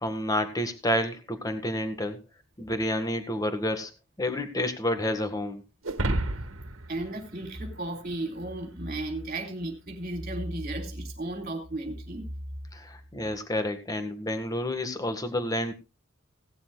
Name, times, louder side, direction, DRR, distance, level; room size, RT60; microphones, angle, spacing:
voice 1, 0.0-2.2 2.6-3.9 4.2-5.6 12.7-15.7, left 1 dB, 20° left, 7 dB, 1.7 m, -29 dB
sound 1, 5.8-8.4, right 1 dB, 80° right, 1.6 m, -32 dB
voice 2, 6.9-12.3, right 1 dB, 40° right, 2 dB, 3.5 m, -34 dB
18.0 x 12.5 x 2.4 m, 0.28 s
head